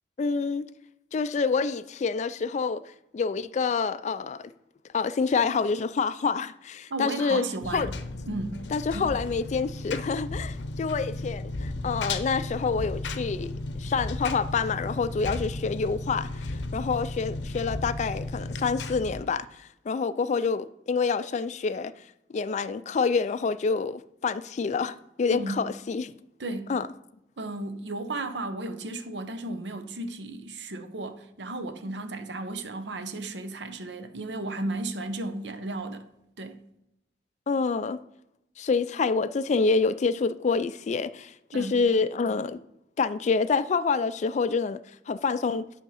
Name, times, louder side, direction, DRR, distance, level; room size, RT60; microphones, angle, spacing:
voice 1, 0.2-0.7 1.1-2.8 3.1-4.5 4.9-7.4 7.7-7.9 8.7-21.9 22.3-26.1 26.7-26.9 37.5-38.0 38.6-42.6 43.0-44.8 45.1-45.6, left 5 dB, 40° left, 0.3 m, -27 dB
voice 2, 6.9-7.9 8.3-8.6 8.9-9.1 25.3-25.7 26.4-26.7 27.4-36.1 36.4-36.6 41.5-41.8, right 2 dB, 80° right, 0.8 m, -34 dB
Engine, 7.6-19.2, left 2 dB, 85° left, 0.7 m, -34 dB
9.2 x 3.6 x 5.6 m
head